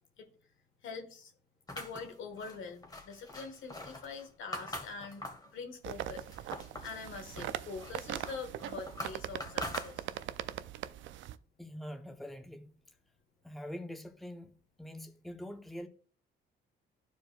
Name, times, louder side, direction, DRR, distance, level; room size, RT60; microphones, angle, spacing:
voice 1, 0.8-1.3 1.7-5.2 5.5-6.5 6.8-10.2, left 4 dB, 80° left, 1.4 m, -44 dB
sound 1, 1.7-5.5 6.0-7.0 7.4-10.4, left 1 dB, 20° left, 1.4 m, -44 dB
sound 2, 5.8-11.4, right 12 dB, 75° right, 0.4 m, -41 dB
voice 2, 11.6-12.8 13.4-14.5 14.8-15.9, equal, ahead, 0.7 m, -44 dB
12.5 x 4.7 x 2.3 m
cardioid pair, 90°, 20 cm